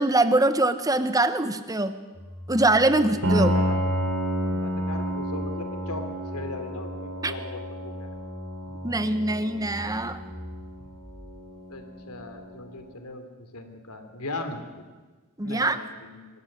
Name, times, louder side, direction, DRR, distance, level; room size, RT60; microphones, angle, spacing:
voice 1, 0.0-2.0 2.5-3.6 7.2-7.3 8.8-10.2 15.4-15.8, right 2 dB, 15° right, 11 dB, 1.1 m, -23 dB
sound 1, 2.1-11.4, left 1 dB, 25° left, 4.4 m, -41 dB
voice 2, 3.0-3.9 4.4-8.2 11.7-14.8 15.4-16.3, left 2 dB, 90° left, 7 dB, 3.2 m, -39 dB
Piano, 3.2-12.8, equal, 65° right, 3.1 m, -30 dB
23.5 x 13.5 x 10.0 m, 1.3 s
head